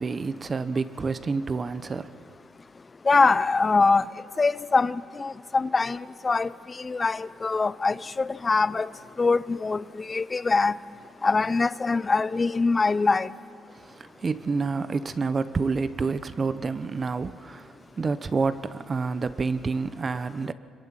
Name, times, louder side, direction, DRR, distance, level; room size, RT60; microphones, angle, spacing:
voice 1, 0.0-2.2 13.8-20.5, right 4 dB, 35° right, 1.0 m, -28 dB
voice 2, 3.1-4.0 4.4-8.9 9.2-10.8 11.2-13.3, left 4 dB, 30° left, 0.7 m, -23 dB
26.0 x 22.5 x 9.1 m
cardioid pair, 90°, 0 cm